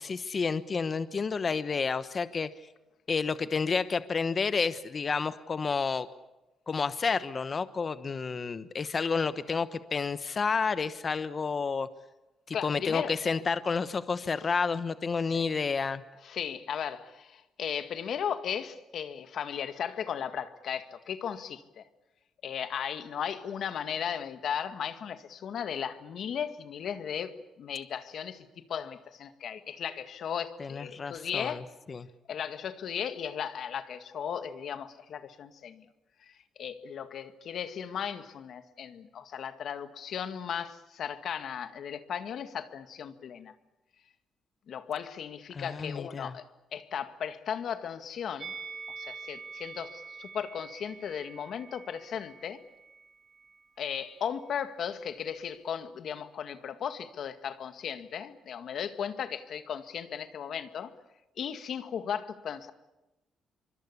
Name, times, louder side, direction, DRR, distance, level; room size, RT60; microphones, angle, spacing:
voice 1, 0.0-2.5 3.1-6.1 6.7-11.9 12.5-16.0 30.6-31.6 31.9-32.1 45.5-46.3, left 5 dB, 40° left, 1.1 m, -30 dB
voice 2, 12.5-13.2 15.3-15.4 16.2-21.8 22.4-31.7 32.3-35.9 36.2-43.5 44.7-46.4 46.7-48.5 49.0-52.6 53.8-60.9 61.4-62.7, left 8 dB, 65° left, 1.9 m, -36 dB
Musical instrument, 48.4-53.6 53.9-54.1, right 5 dB, 50° right, 4.1 m, -46 dB
25.0 x 24.0 x 8.3 m
cardioid pair, 90°, 0 cm